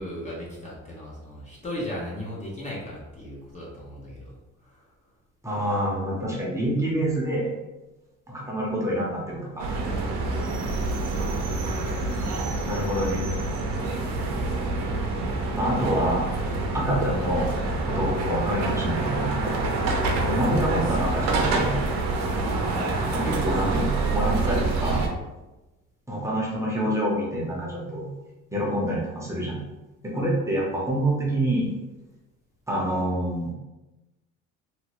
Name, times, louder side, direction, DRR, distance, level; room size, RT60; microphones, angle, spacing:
voice 1, 0.0-4.3 4.6-4.8 11.0-11.4, equal, 25° left, -5 dB, 0.7 m, -36 dB
voice 2, 5.4-7.5 8.3-9.7 12.7-13.3 15.5-17.5 17.9-19.3 20.2-21.8 23.1-25.1 26.1-28.1 28.5-29.6 30.1-31.8 32.7-33.5, right 1 dB, 10° right, -5 dB, 0.8 m, -27 dB
sound 1, 9.6-25.1, right 3 dB, 65° right, 0.7 m, -26 dB
2.8 x 2.7 x 3.0 m, 1.1 s
cardioid pair, 125°, 29 cm